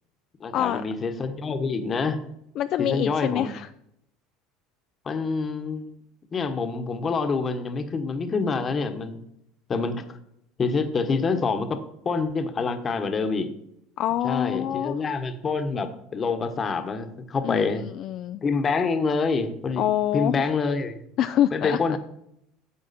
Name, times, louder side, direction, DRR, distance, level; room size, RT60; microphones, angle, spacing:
voice 1, 0.4-2.2 2.8-3.5 5.0-5.9 6.3-9.2 9.7-10.0 10.6-11.8 12.0-13.5 14.2-17.8 18.4-19.8 20.1-21.0 21.5-22.0, left 4 dB, 30° left, 8 dB, 1.1 m, -26 dB
voice 2, 2.6-3.7 14.0-15.0 17.4-18.4 19.8-20.4 21.2-22.0, left 11 dB, 55° left, 10 dB, 0.4 m, -26 dB
9.5 x 7.3 x 4.2 m, 0.75 s
supercardioid pair, 105°, 0 cm